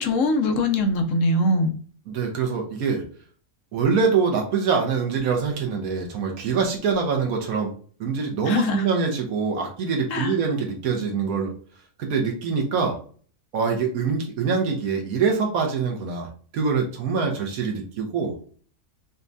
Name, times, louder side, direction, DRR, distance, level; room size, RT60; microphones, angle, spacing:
voice 1, 0.0-1.7 8.5-8.8 10.1-10.3, left 1 dB, 70° left, 5 dB, 1.0 m, -22 dB
voice 2, 2.1-3.0 3.7-7.7 8.0-11.5 12.0-13.0 13.5-18.3, right 5 dB, 90° right, 2 dB, 1.3 m, -24 dB
5.2 x 2.3 x 2.6 m, 0.44 s
omnidirectional pair, 1.5 m